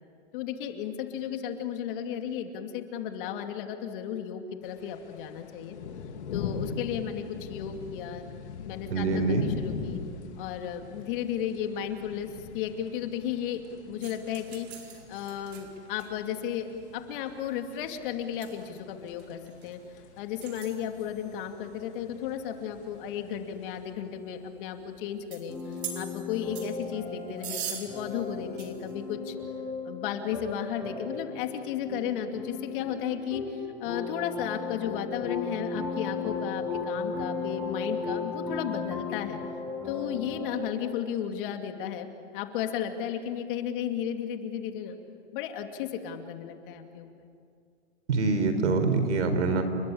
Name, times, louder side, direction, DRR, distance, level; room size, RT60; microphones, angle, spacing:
voice 1, 0.3-5.8 6.3-8.2 8.7-10.0 10.4-12.3 12.5-14.7 15.1-16.7 16.9-19.8 20.2-29.4 29.8-39.4 39.8-42.1 42.3-45.0 45.3-47.3, left 9 dB, 50° left, 5 dB, 2.7 m, -34 dB
sound 1, 4.6-23.9, left 6 dB, 80° left, 3.1 m, -42 dB
voice 2, 8.9-9.5 48.1-49.6, right 3 dB, 85° right, 9 dB, 4.6 m, -25 dB
sound 2, 14.0-29.1, right 9 dB, 65° right, 5.0 m, -46 dB
sound 3, 25.5-40.6, left 4 dB, 5° right, 7.4 m, -36 dB
30.0 x 21.5 x 8.7 m, 2.3 s
supercardioid pair, 150°, 34 cm